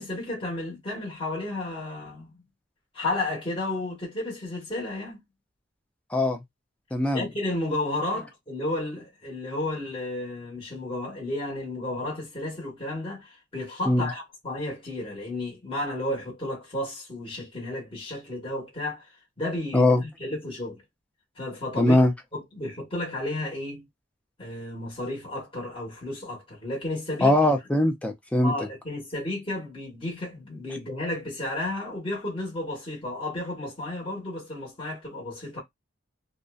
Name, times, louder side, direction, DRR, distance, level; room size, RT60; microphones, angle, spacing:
voice 1, 0.0-2.4 2.9-5.2 7.1-20.8 21.4-22.0 22.3-23.8 24.4-27.3 28.4-35.6, left 1 dB, 25° left, 1.1 m, -32 dB
voice 2, 6.9-7.3 13.9-14.1 19.7-20.0 21.8-22.1 27.2-28.7, left 1 dB, 5° left, 0.4 m, -21 dB
2.5 x 2.1 x 2.3 m
head